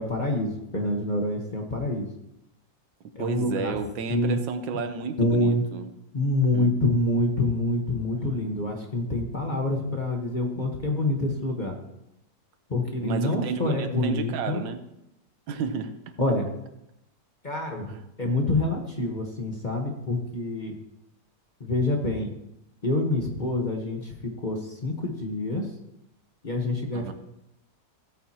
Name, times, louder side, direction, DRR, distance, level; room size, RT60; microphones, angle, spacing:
voice 1, 0.0-2.1 3.1-3.8 4.1-4.4 5.2-5.6 6.1-11.8 12.7-14.6 16.2-16.5 17.4-17.9 18.2-20.8 21.6-22.3 22.8-25.7 26.4-27.1, left 2 dB, 30° left, 1 dB, 1.1 m, -26 dB
voice 2, 3.2-5.9 6.5-6.8 13.0-14.8 15.5-16.1 17.9-18.3 26.9-27.1, right 5 dB, 80° right, 9 dB, 1.5 m, -32 dB
16.0 x 9.1 x 2.9 m, 0.84 s
omnidirectional pair, 2.0 m